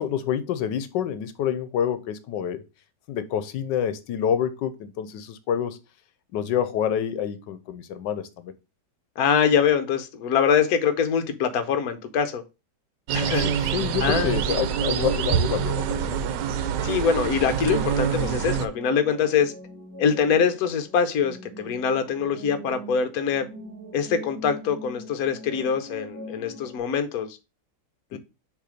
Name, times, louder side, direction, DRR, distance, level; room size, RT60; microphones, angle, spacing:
voice 1, 0.0-2.6 3.1-5.8 6.3-8.5 13.2-16.2 28.1-28.2, left 9 dB, 85° left, 1.4 m, -27 dB
voice 2, 9.2-12.4 13.1-13.5 14.0-14.6 16.8-19.5 20.0-23.5 23.9-27.4 28.1-28.2, left 7 dB, 60° left, 1.3 m, -24 dB
sound 1, 13.1-18.7, right 8 dB, 90° right, 1.3 m, -26 dB
sound 2, 17.4-26.8, equal, 10° left, 3.4 m, -42 dB
6.7 x 3.3 x 5.0 m
omnidirectional pair, 1.9 m